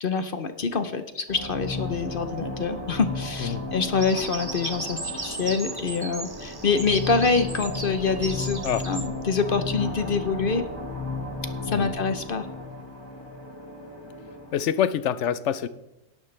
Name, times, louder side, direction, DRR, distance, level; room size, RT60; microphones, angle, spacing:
voice 1, 0.0-10.6 11.6-12.5, left 5 dB, 55° left, 9 dB, 1.0 m, -26 dB
sound 1, 1.3-14.6, left 2 dB, 20° left, 1.4 m, -35 dB
Bird vocalization bird call bird song, 3.9-9.1, right 3 dB, 25° right, 0.8 m, -36 dB
voice 2, 14.5-15.7, left 9 dB, 85° left, 15 dB, 1.0 m, -26 dB
18.0 x 10.5 x 3.3 m, 0.92 s
omnidirectional pair, 1.2 m